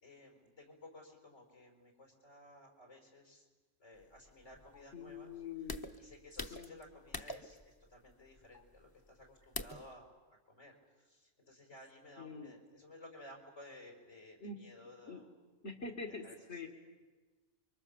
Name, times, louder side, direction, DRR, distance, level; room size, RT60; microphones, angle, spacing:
voice 1, 0.0-3.5 3.8-5.3 6.0-10.1 10.5-10.7 11.0-15.3 16.2-16.4, left 1 dB, 85° left, 2 dB, 5.7 m, -56 dB
sound 1, 4.0-9.9, left 2 dB, 20° left, 0.9 m, -47 dB
voice 2, 4.9-5.9 6.5-6.7 12.2-12.5 14.4-14.6 15.0-15.2 15.6-16.7, left 4 dB, 70° left, 0 dB, 2.5 m, -45 dB
30.0 x 24.0 x 7.2 m, 1.3 s
omnidirectional pair, 1.2 m